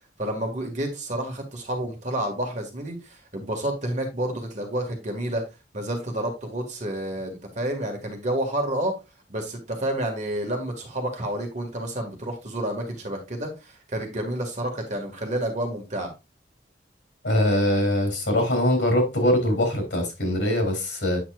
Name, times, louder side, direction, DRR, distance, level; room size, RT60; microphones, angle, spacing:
voice 1, 0.2-5.4 5.7-8.9 9.3-16.1, right 1 dB, 45° right, 1.8 m, -29 dB
voice 2, 17.2-21.2, left 1 dB, 80° left, 3.1 m, -22 dB
8.2 x 5.8 x 2.4 m
head